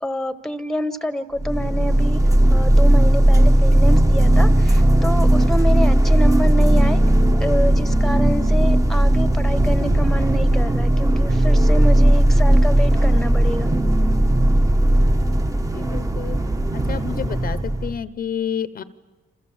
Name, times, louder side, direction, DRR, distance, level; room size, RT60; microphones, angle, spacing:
voice 1, 0.0-2.2 2.5-7.1 7.4-13.7, equal, ahead, 12 dB, 1.2 m, -27 dB
sound 1, 1.4-18.0, right 1 dB, 20° right, 1.3 m, -16 dB
voice 2, 15.7-16.4 16.7-18.8, left 8 dB, 55° left, 15 dB, 0.9 m, -29 dB
28.5 x 27.5 x 7.3 m, 1.2 s
wide cardioid pair, 150°, 19 cm